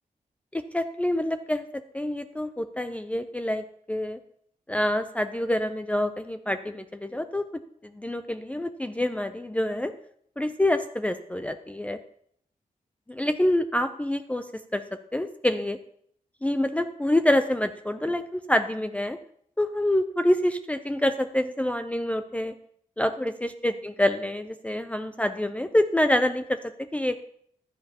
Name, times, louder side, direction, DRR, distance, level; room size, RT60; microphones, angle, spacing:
voice 1, 0.5-4.2 4.7-7.4 7.9-9.9 10.4-12.0 13.1-14.8 15.1-15.8 16.4-19.2 19.6-22.5 23.0-27.2, left 1 dB, 10° left, 8 dB, 0.4 m, -26 dB
15.0 x 11.0 x 2.9 m, 0.67 s
wide cardioid pair, 120°, 14 cm